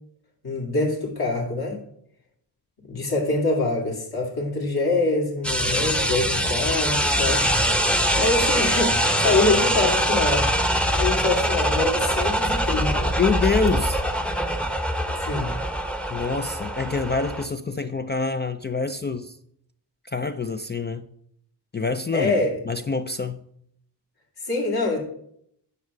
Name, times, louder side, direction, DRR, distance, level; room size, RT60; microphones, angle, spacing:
voice 1, 0.4-1.8 2.8-7.4 8.1-10.5 10.9-13.1 15.2-15.5 22.1-22.5 24.4-25.0, left 2 dB, 60° left, -2 dB, 2.5 m, -25 dB
sound 1, 5.4-17.5, equal, 5° left, 0.7 m, -23 dB
voice 2, 13.1-14.0 16.1-19.4 20.1-21.1 21.7-23.4, left 4 dB, 25° left, 9 dB, 0.3 m, -26 dB
9.7 x 4.8 x 6.6 m, 0.70 s
wide cardioid pair, 130°, 43 cm